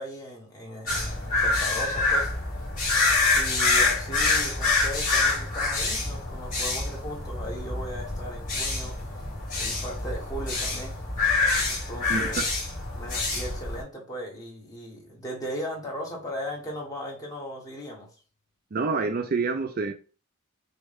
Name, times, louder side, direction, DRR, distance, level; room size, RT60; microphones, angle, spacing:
voice 1, 0.0-2.3 3.3-9.0 9.5-11.0 11.6-12.4 12.9-18.1, equal, 15° left, 1.4 m, -37 dB
sound 1, 0.9-13.8, left 3 dB, 35° left, 2.3 m, -26 dB
voice 2, 12.1-12.5 18.7-19.9, right 4 dB, 40° right, 0.4 m, -27 dB
6.2 x 2.4 x 3.5 m
head